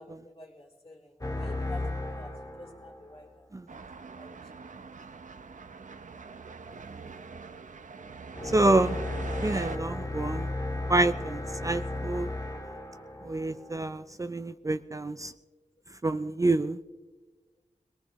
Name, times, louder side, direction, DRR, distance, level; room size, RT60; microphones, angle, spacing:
voice 1, 0.0-3.5 4.1-4.7 7.0-7.3 11.2-11.8, left 2 dB, 45° left, -2 dB, 3.2 m, -50 dB
sound 1, 1.2-3.3 8.3-14.0, left 2 dB, 25° left, 1.7 m, -35 dB
sound 2, 3.7-9.8, right 4 dB, 70° right, 0.7 m, -43 dB
voice 2, 8.5-9.0 9.4-10.5 10.9-12.3 13.2-15.3 16.0-16.8, right 2 dB, 25° right, 11 dB, 0.4 m, -27 dB
21.5 x 18.5 x 3.1 m, 1.3 s
wide cardioid pair, 70°, 14 cm